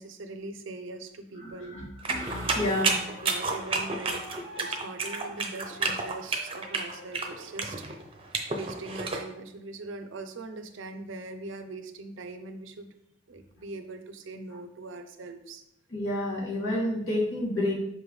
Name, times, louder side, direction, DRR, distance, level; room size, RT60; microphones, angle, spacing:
voice 1, 0.0-1.8 2.6-2.9 3.2-7.9 8.5-12.9 13.3-15.6, right 3 dB, 75° right, 7 dB, 0.6 m, -41 dB
voice 2, 1.4-2.9 15.9-17.7, left 1 dB, 75° left, -5 dB, 2.4 m, -30 dB
sound 1, 2.0-9.2, right 3 dB, 25° right, 0.7 m, -30 dB
Wind instrument woodwind instrument, 2.8-7.6, left 1 dB, 45° left, 1.8 m, -49 dB
5.7 x 5.2 x 3.2 m, 0.78 s
head